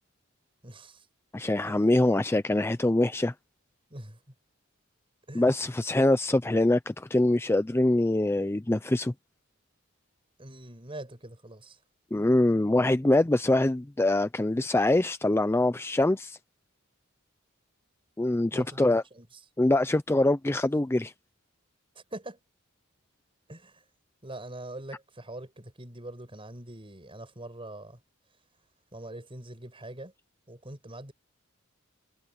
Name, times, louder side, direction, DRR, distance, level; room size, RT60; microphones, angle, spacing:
voice 1, 0.6-1.1 1.6-1.9 3.9-4.3 5.3-5.5 10.4-11.8 18.5-19.4 21.9-22.4 23.5-23.8 24.2-28.0 28.9-30.1 30.5-31.1, right 1 dB, 25° right, 6.0 m, -43 dB
voice 2, 1.3-3.3 5.3-9.1 12.1-16.4 18.2-19.0 19.6-21.1, left 1 dB, 10° left, 0.4 m, -24 dB
head